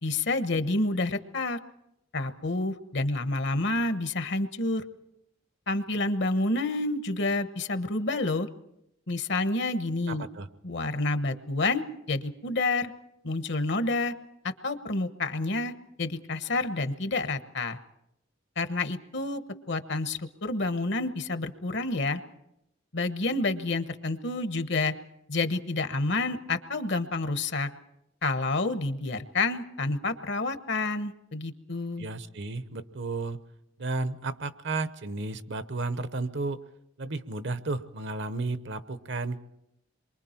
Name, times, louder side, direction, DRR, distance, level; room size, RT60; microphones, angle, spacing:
voice 1, 0.0-1.6 2.1-4.8 5.7-8.5 9.1-10.2 10.6-12.9 13.2-14.1 14.4-15.7 16.0-17.8 18.6-22.2 22.9-24.9 25.3-27.7 28.2-32.1, left 2 dB, 65° left, 10 dB, 1.2 m, -29 dB
voice 2, 10.1-10.5 32.0-33.4 33.8-36.6 37.0-39.4, right 3 dB, 65° right, 12 dB, 1.0 m, -33 dB
27.5 x 23.5 x 4.4 m, 0.82 s
head